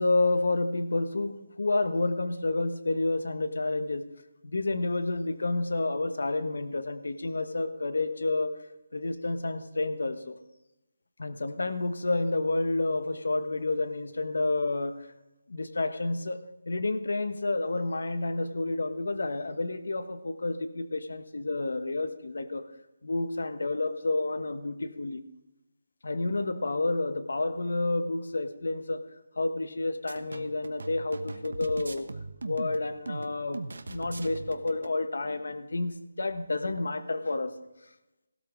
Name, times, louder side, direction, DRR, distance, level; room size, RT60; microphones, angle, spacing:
voice 1, 0.0-4.0 4.4-8.6 8.9-10.4 11.2-15.1 15.5-22.7 23.0-25.2 26.0-29.0 29.4-32.1 32.4-37.6, left 2 dB, 75° left, 10 dB, 1.2 m, -30 dB
sound 1, 30.1-34.9, right 3 dB, 90° right, 1.1 m, -39 dB
16.5 x 12.5 x 3.8 m, 0.96 s
hypercardioid pair, 180°, 0 cm